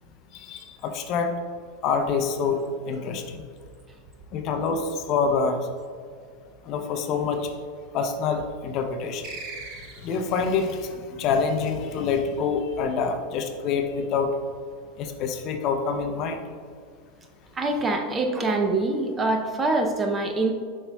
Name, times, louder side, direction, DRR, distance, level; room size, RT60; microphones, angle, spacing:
voice 1, 0.3-1.4 1.8-2.6 2.9-3.4 4.3-5.7 6.6-7.5 7.9-9.3 10.0-14.3 15.0-16.4, left 5 dB, 40° left, 6 dB, 0.6 m, -26 dB
sound 1, 9.2-10.4, right 4 dB, 40° right, 1.1 m, -39 dB
voice 2, 17.5-20.5, right 2 dB, 15° right, 4 dB, 0.5 m, -24 dB
8.6 x 5.4 x 2.3 m, 2.1 s
supercardioid pair, 145°, 0 cm